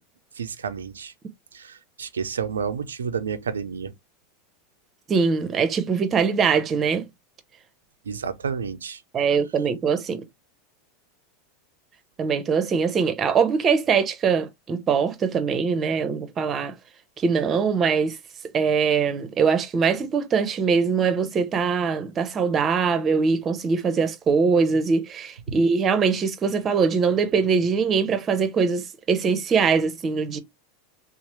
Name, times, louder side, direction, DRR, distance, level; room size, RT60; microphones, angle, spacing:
voice 1, 0.3-1.1 1.5-3.9 8.0-9.0, right 6 dB, 85° right, 0.4 m, -30 dB
voice 2, 5.1-7.1 9.1-10.3 12.2-16.7 17.2-18.2 18.5-30.4, right 5 dB, 30° right, 0.7 m, -22 dB
2.8 x 2.1 x 3.1 m
hypercardioid pair, 90°, 0 cm